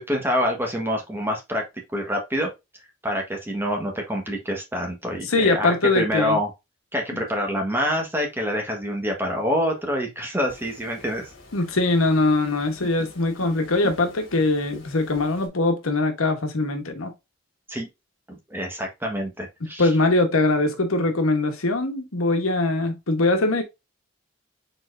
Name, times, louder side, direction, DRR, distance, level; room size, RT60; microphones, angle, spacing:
voice 1, 0.0-1.6 1.9-2.5 3.0-6.5 6.9-11.3 17.7-17.9 18.3-19.9, equal, 10° right, 1.3 m, -26 dB
voice 2, 5.3-6.4 11.5-17.1 19.8-23.6, left 2 dB, 85° left, 1.1 m, -22 dB
sound 1, 10.5-15.5, left 1 dB, 65° left, 1.9 m, -44 dB
4.5 x 4.1 x 2.5 m
head